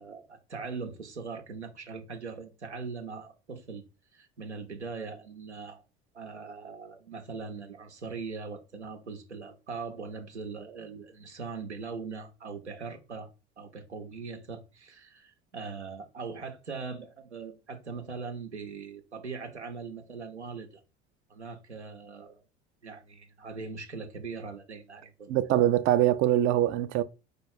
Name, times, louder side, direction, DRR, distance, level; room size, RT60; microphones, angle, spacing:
voice 1, 0.0-3.8 4.1-5.8 6.1-13.3 13.6-20.8 21.3-22.4 22.8-25.3, right 4 dB, 85° right, 0.7 m, -40 dB
voice 2, 25.3-27.0, right 12 dB, 40° right, 0.4 m, -23 dB
4.4 x 2.4 x 4.8 m
figure-of-eight pair, 65°, 33 cm